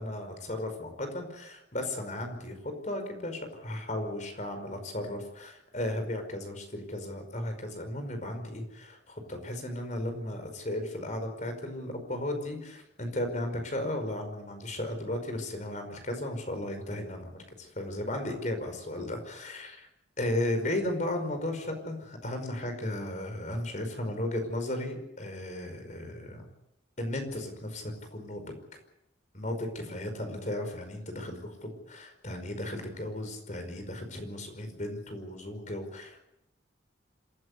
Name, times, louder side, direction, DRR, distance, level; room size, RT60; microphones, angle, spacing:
voice 1, 0.0-19.9 20.2-26.4 27.0-28.6 29.3-36.2, left 1 dB, 40° left, 7 dB, 5.2 m, -35 dB
26.5 x 15.5 x 8.2 m, 0.84 s
head